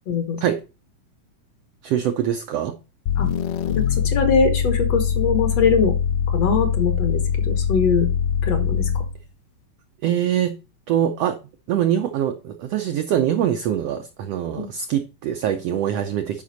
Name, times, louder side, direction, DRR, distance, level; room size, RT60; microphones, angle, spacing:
voice 1, 0.1-0.4 3.2-3.3 3.8-6.0 6.3-8.1 8.4-9.0 14.5-14.7, left 5 dB, 60° left, 2.1 m, -22 dB
voice 2, 1.8-2.8 10.0-10.6 10.9-11.4 11.7-16.4, right 10 dB, 85° right, 1.4 m, -23 dB
sound 1, 3.1-9.2, left 7 dB, 90° left, 2.3 m, -22 dB
9.7 x 5.2 x 4.1 m
omnidirectional pair, 3.7 m